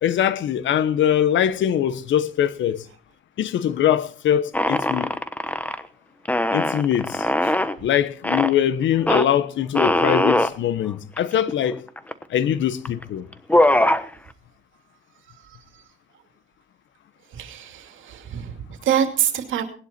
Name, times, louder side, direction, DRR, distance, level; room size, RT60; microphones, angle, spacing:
voice 1, 0.0-2.9 3.4-5.1 6.5-7.5 7.8-11.8 12.3-13.3, left 10 dB, 70° left, 1.1 m, -22 dB
sound 1, 4.5-5.8 6.2-7.8 8.2-8.5 9.1-9.2 9.7-10.5 11.2-11.3 11.5-12.2 12.8-13.0 13.3-14.0, left 1 dB, 5° left, 1.1 m, -20 dB
voice 2, 17.3-19.6, right 9 dB, 80° right, 2.6 m, -25 dB
19.5 x 11.0 x 4.4 m
cardioid pair, 90°, 20 cm